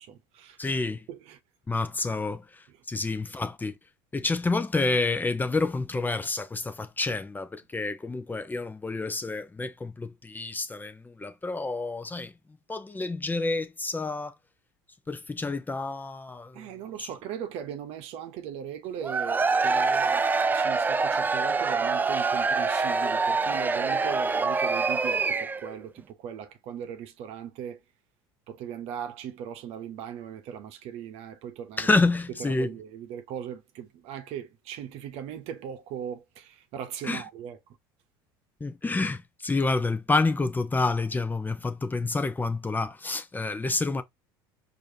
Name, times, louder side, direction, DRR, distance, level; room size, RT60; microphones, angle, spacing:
voice 1, 0.0-0.6 1.1-1.4 16.5-20.2 20.5-27.8 28.5-31.9 32.4-37.6, right 9 dB, 60° right, 0.9 m, -39 dB
voice 2, 0.6-1.0 1.7-3.7 4.1-12.3 12.7-14.4 15.1-16.6 17.0-17.1 31.8-32.7 37.0-37.2 38.6-44.0, left 3 dB, 15° left, 0.7 m, -28 dB
Cheering / Crowd, 19.0-25.7, right 4 dB, 15° right, 0.3 m, -25 dB
4.7 x 2.8 x 2.8 m
hypercardioid pair, 85°, 12 cm